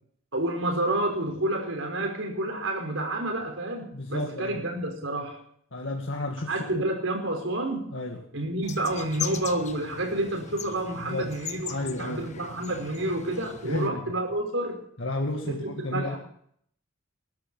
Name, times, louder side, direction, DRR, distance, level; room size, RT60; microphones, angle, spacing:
voice 1, 0.3-5.4 6.5-7.9 8.3-14.8 15.4-16.2, right 1 dB, 75° right, 2 dB, 5.3 m, -29 dB
voice 2, 3.9-4.6 5.7-6.8 7.9-8.2 11.0-11.3 11.7-12.3 13.6-14.2 15.0-16.2, left 2 dB, 65° left, 1 dB, 2.1 m, -32 dB
sound 1, 8.6-13.9, left 7 dB, 35° left, 1.3 m, -39 dB
21.5 x 12.0 x 5.6 m, 0.65 s
head